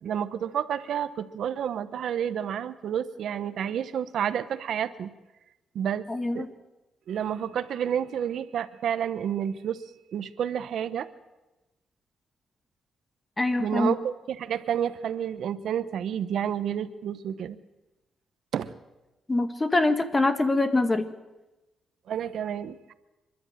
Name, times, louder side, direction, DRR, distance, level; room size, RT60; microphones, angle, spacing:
voice 1, 0.0-5.1 5.7-6.1 6.3-6.5 7.1-9.8 10.1-11.1 13.6-17.6 18.5-18.7 22.1-22.9, right 9 dB, 75° right, 13 dB, 0.9 m, -30 dB
voice 2, 6.1-6.5 13.4-14.0 19.3-21.1, left 2 dB, 20° left, 8 dB, 1.8 m, -24 dB
26.5 x 12.0 x 9.0 m, 1.0 s
cardioid pair, 105°, 0 cm